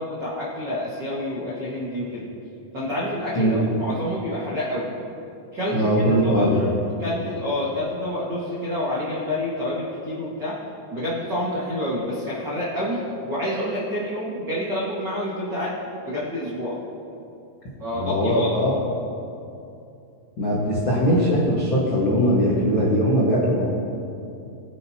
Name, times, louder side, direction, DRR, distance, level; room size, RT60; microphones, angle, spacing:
voice 1, 0.0-2.3 2.7-4.9 5.5-6.7 7.0-10.5 10.9-15.7 16.0-16.8 17.8-18.6, left 1 dB, 65° right, -8 dB, 1.0 m, -28 dB
voice 2, 5.7-6.6 18.0-18.7 20.4-23.7, equal, 75° left, -7 dB, 1.1 m, -20 dB
21.5 x 9.1 x 2.9 m, 2.6 s
omnidirectional pair, 5.3 m